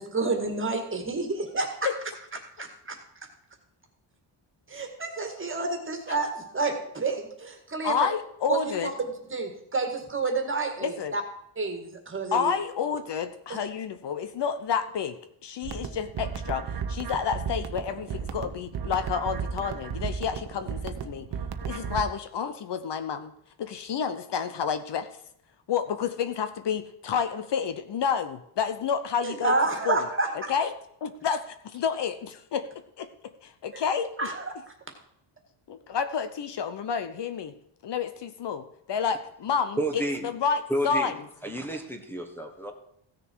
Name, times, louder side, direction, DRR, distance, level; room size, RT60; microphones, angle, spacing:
voice 1, 0.0-1.9 2.6-3.0 4.7-8.0 8.5-8.9 9.3-11.2 11.6-12.5 13.5-13.6 29.2-30.5 33.7-33.8 34.2-34.5, right 3 dB, 25° right, 4 dB, 2.0 m, -29 dB
voice 2, 7.8-8.9 10.8-11.1 12.3-15.2 15.4-21.3 21.6-23.3 23.6-25.1 25.7-29.5 29.8-30.0 30.5-30.7 31.0-32.7 33.0-33.1 33.4-34.1 35.7-37.5 37.8-41.2, left 7 dB, 55° left, 10 dB, 0.9 m, -29 dB
sound 1, 15.6-22.0, right 6 dB, 50° right, 1.0 m, -34 dB
voice 3, 39.8-40.3 40.7-41.1 41.4-42.7, right 1 dB, 5° left, 2 dB, 1.2 m, -30 dB
15.5 x 6.7 x 4.6 m, 0.73 s
cardioid pair, 135°, 49 cm